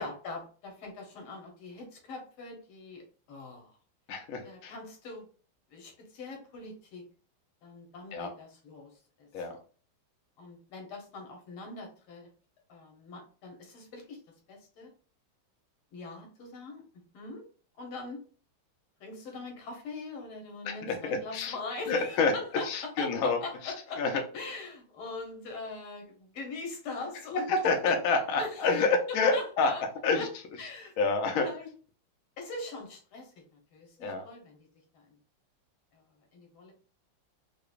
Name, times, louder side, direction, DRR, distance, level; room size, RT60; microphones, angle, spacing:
voice 1, 0.0-3.7 4.4-5.3 5.7-7.0 7.6-8.9 9.2-9.3 10.4-12.3 12.7-14.2 14.5-14.9 15.9-16.8 17.1-17.4 17.8-18.2 19.0-28.0 28.4-29.8 30.2-30.9 31.4-31.7 32.4-34.7 34.9-35.1 35.9-36.0 36.3-36.7, left 3 dB, 85° left, 1 dB, 1.9 m, -42 dB
voice 2, 4.1-4.7 8.1-8.3 9.3-9.5 20.7-21.5 21.9-22.3 22.7-23.4 24.0-24.1 27.3-29.7 30.0-30.2 31.0-31.5 34.0-34.2, left 4 dB, 65° left, 3 dB, 0.8 m, -27 dB
4.8 x 2.2 x 2.5 m, 0.39 s
omnidirectional pair, 2.3 m